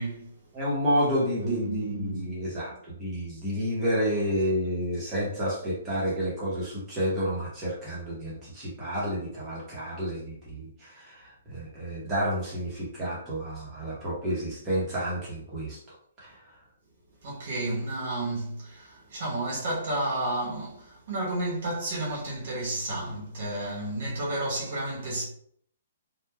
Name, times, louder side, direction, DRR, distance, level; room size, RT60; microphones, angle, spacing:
voice 1, 0.0-0.3 1.4-2.6 17.2-25.3, right 1 dB, 50° right, 0.9 m, -31 dB
voice 2, 0.5-16.4, equal, 15° right, 0.9 m, -30 dB
3.0 x 2.2 x 2.2 m
hypercardioid pair, 170°, 0 cm